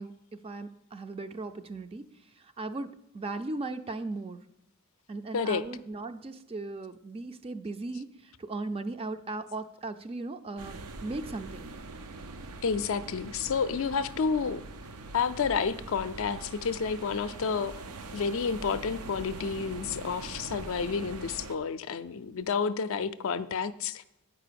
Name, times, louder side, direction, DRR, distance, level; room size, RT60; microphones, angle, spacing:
voice 1, 0.0-4.5 5.1-11.7, right 2 dB, 25° right, 0.4 m, -38 dB
sound 1, 10.6-21.5, right 3 dB, 90° right, 0.7 m, -43 dB
voice 2, 12.6-14.6 15.1-17.7 18.1-24.0, left 5 dB, 60° left, 0.4 m, -30 dB
9.0 x 4.9 x 6.8 m
head